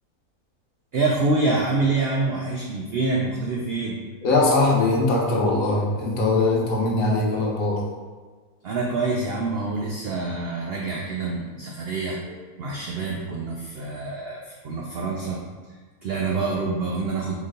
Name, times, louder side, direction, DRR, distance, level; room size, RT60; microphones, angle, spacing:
voice 1, 0.9-4.0 8.6-12.2 12.6-15.4 16.0-17.3, right 3 dB, 85° right, -1 dB, 0.5 m, -26 dB
voice 2, 4.2-7.8 12.2-12.3, left 2 dB, 65° left, -3 dB, 1.3 m, -21 dB
3.9 x 3.1 x 3.7 m, 1.4 s
omnidirectional pair, 1.6 m